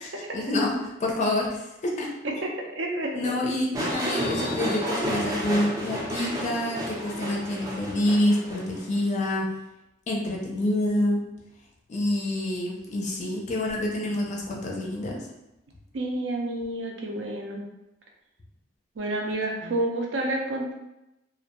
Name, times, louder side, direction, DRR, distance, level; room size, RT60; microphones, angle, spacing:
voice 1, 0.0-2.1 3.1-9.5 10.1-11.2 11.9-15.2 19.6-19.8, left 1 dB, 40° left, -1 dB, 0.4 m, -27 dB
voice 2, 2.2-3.3 10.5-10.6 15.9-17.6 19.0-20.7, right 1 dB, 70° right, 1 dB, 0.5 m, -29 dB
sound 1, 3.7-9.0, equal, 20° right, 0.4 m, -31 dB
2.4 x 2.1 x 2.9 m, 0.91 s
head